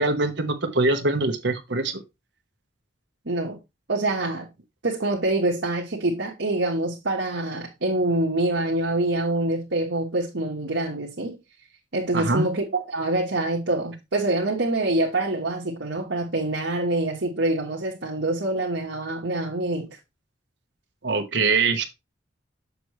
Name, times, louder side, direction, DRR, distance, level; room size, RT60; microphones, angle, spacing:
voice 1, 0.0-2.0 12.1-12.5 21.0-21.8, right 3 dB, 70° right, 1.2 m, -23 dB
voice 2, 3.2-3.6 3.9-4.5 4.8-11.4 11.9-19.9, right 2 dB, 85° right, 1.5 m, -25 dB
6.7 x 6.5 x 3.2 m
head